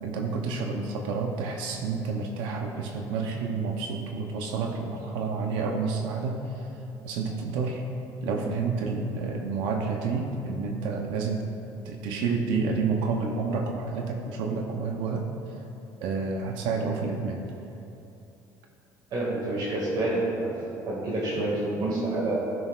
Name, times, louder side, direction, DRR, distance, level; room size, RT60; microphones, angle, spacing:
voice 1, 0.0-6.4 7.0-7.8 8.2-11.4 11.9-15.3 16.0-17.4 21.4-21.5, right 4 dB, 90° right, 2 dB, 0.8 m, -29 dB
voice 2, 19.1-20.6 20.9-22.4, right 2 dB, 55° right, -5 dB, 2.0 m, -28 dB
14.5 x 6.4 x 2.4 m, 2.8 s
cardioid pair, 120°, 8 cm